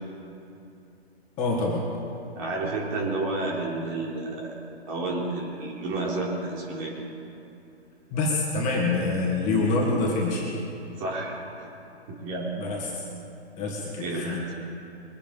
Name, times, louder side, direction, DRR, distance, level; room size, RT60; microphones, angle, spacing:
voice 1, 1.4-1.9 8.1-10.5 12.6-13.0 13.6-14.4, left 3 dB, 20° left, -3 dB, 2.5 m, -26 dB
voice 2, 2.4-6.9 11.0-11.7 12.1-12.5 14.0-14.2, right 2 dB, 30° right, -3 dB, 3.8 m, -31 dB
23.0 x 8.8 x 5.5 m, 2.9 s
figure-of-eight pair, 135°, 32 cm